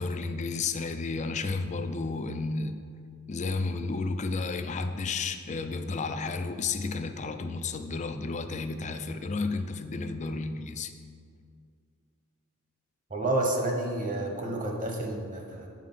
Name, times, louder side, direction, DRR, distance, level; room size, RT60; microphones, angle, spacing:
voice 1, 0.0-2.8 3.3-10.9, left 3 dB, 35° left, 9 dB, 0.4 m, -32 dB
voice 2, 13.1-15.7, right 2 dB, 40° right, 1 dB, 1.2 m, -30 dB
8.8 x 4.9 x 5.7 m, 2.2 s
head